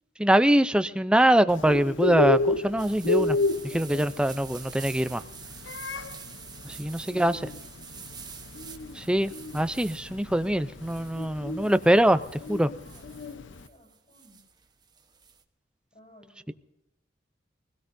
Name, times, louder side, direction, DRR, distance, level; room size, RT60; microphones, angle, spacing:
voice 1, 0.2-3.4 3.6-5.2 6.6-7.4 8.9-12.7, right 1 dB, 5° right, 0.5 m, -23 dB
Bird, 1.5-13.6, left 2 dB, 85° left, 0.8 m, -31 dB
sound 1, 2.8-15.4, right 7 dB, 25° right, 1.0 m, -47 dB
voice 2, 6.7-7.7 12.7-14.4 15.9-16.5, equal, 40° left, 6.9 m, -58 dB
23.0 x 17.0 x 2.7 m
head